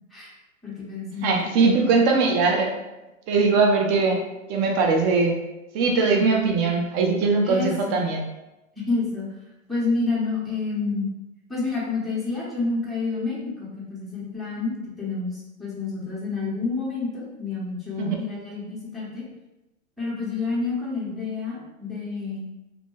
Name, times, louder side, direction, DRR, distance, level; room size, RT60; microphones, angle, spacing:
voice 1, 0.6-1.9 7.4-8.0 8.8-9.3 9.7-11.1 11.5-19.2 20.0-22.5, left 3 dB, ahead, -8 dB, 0.8 m, -29 dB
voice 2, 1.2-2.7 3.3-4.2 4.5-5.4 5.7-8.2 18.0-18.2, right 4 dB, 30° right, 2 dB, 0.5 m, -21 dB
2.7 x 2.2 x 3.0 m, 0.99 s
hypercardioid pair, 115°, 41 cm